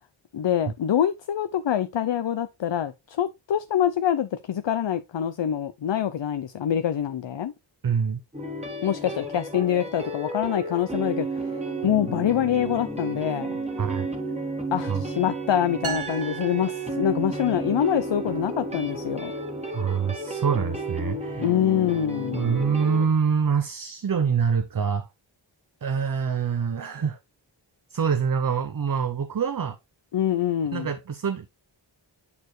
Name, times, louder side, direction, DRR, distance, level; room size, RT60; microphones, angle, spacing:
voice 1, 0.3-7.5 8.8-13.6 14.7-19.3 21.4-22.5 30.1-30.9, left 10 dB, 65° left, 0.6 m, -25 dB
voice 2, 7.8-8.2 13.8-14.1 14.9-15.0 19.7-21.5 22.3-25.1 25.8-27.2 27.9-29.8 30.7-31.5, right 6 dB, 45° right, 0.6 m, -25 dB
sound 1, 8.3-23.1, right 1 dB, 15° right, 1.7 m, -32 dB
sound 2, 15.8-17.6, right 8 dB, 85° right, 1.2 m, -36 dB
8.5 x 4.4 x 3.1 m
wide cardioid pair, 50°, 47 cm